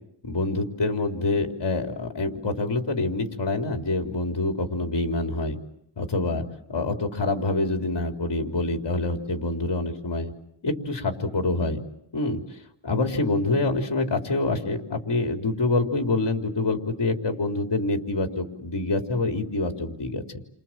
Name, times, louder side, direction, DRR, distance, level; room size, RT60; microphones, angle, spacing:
voice 1, 0.2-5.6 6.0-6.4 6.7-10.3 10.6-11.8 12.1-12.4 12.8-20.2, left 2 dB, 60° left, 3 dB, 3.8 m, -26 dB
29.5 x 26.5 x 7.6 m, 0.78 s
wide cardioid pair, 105°, 47 cm